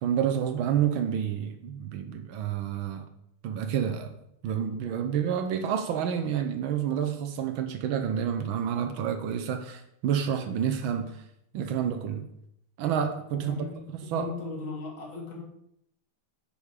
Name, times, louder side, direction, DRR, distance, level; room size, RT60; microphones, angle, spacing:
voice 1, 0.0-3.1 3.4-4.1 4.4-11.1 11.5-12.3 12.8-13.6 14.1-14.3, right 8 dB, 75° right, 1.4 m, -29 dB
voice 2, 13.3-15.4, left 3 dB, 65° left, 2.4 m, -37 dB
9.3 x 4.0 x 4.9 m
omnidirectional pair, 2.4 m